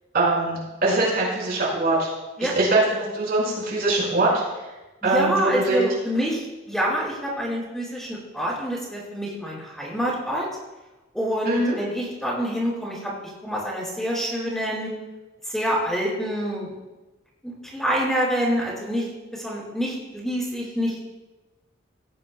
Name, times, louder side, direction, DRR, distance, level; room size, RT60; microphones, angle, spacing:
voice 1, 0.1-2.1 2.4-4.3 5.0-5.8 11.4-11.7, right 2 dB, 50° right, -5 dB, 5.1 m, -22 dB
voice 2, 5.0-10.5 11.1-13.1 13.4-14.9 15.5-16.7 17.4-19.1 19.3-20.9, equal, ahead, -4 dB, 4.4 m, -26 dB
17.0 x 17.0 x 2.2 m, 1.1 s
head